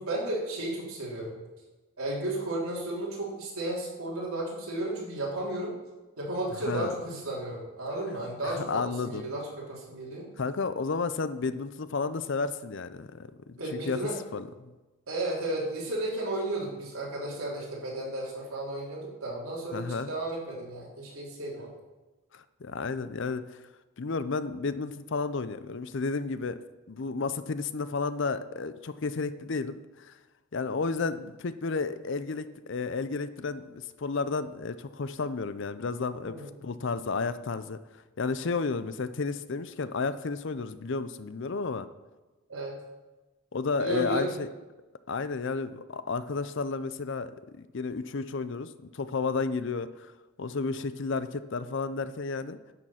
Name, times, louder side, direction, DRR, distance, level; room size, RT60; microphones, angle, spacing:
voice 1, 0.0-1.4 2.0-5.7 6.2-10.3 13.6-14.2 15.1-21.7 36.2-36.8 42.5-42.8 43.8-44.3, right 1 dB, 80° right, -4 dB, 3.4 m, -33 dB
voice 2, 8.4-9.2 10.4-13.6 13.9-14.0 14.3-14.7 19.7-20.1 22.3-23.6 24.0-26.6 26.9-30.2 30.5-36.4 36.6-37.8 38.2-41.9 43.5-44.5 45.1-50.1 50.4-52.6, left 4 dB, 55° left, 13 dB, 0.5 m, -32 dB
11.0 x 6.7 x 5.7 m, 1.1 s
head